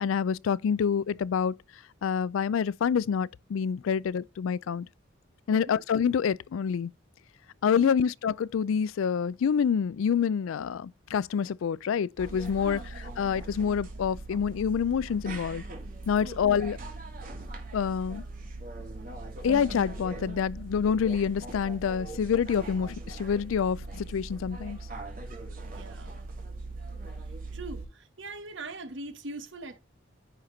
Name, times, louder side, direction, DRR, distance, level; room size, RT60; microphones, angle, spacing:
voice 1, 0.0-1.5 2.0-4.9 5.5-6.9 7.6-12.8 13.2-15.6 16.1-16.8 17.7-18.2 19.4-24.8, left 7 dB, 80° left, 0.3 m, -27 dB
voice 2, 5.5-5.8 7.7-8.0 12.6-12.9 16.2-16.5 25.6-26.2 27.5-29.8, right 2 dB, 65° right, 1.2 m, -42 dB
sound 1, 12.2-27.9, right 2 dB, 45° right, 2.3 m, -40 dB
10.0 x 4.3 x 3.9 m
head